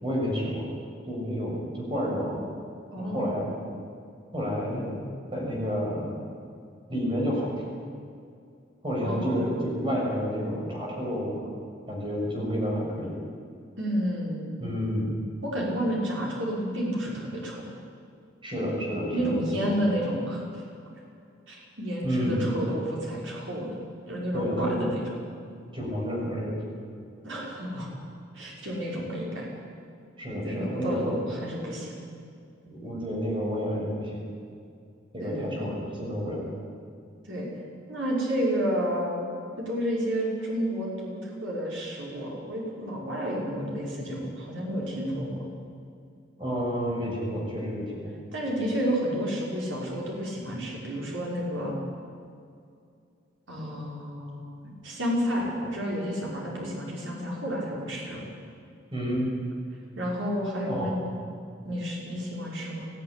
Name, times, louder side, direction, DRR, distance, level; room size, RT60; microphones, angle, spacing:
voice 1, 0.0-0.7 1.1-2.5 3.0-3.5 4.3-5.0 5.3-6.2 6.9-7.5 8.8-11.5 11.9-13.1 14.6-15.1 18.4-19.8 22.0-22.4 24.3-24.8 25.7-26.6 30.2-31.0 32.7-34.1 35.1-36.4 46.4-48.1 58.9-59.3 60.6-60.9, equal, 25° right, -3 dB, 6.7 m, -30 dB
voice 2, 2.9-3.4 9.0-9.5 13.8-14.5 15.4-17.6 19.1-20.6 21.5-23.8 24.1-25.0 27.2-27.9 28.3-29.5 30.4-32.0 35.2-35.7 37.3-37.5 37.9-39.1 39.6-45.4 48.3-51.8 53.5-58.2 60.0-61.0 61.6-62.9, equal, 75° right, -3 dB, 5.5 m, -30 dB
19.5 x 15.0 x 10.0 m, 2.4 s
head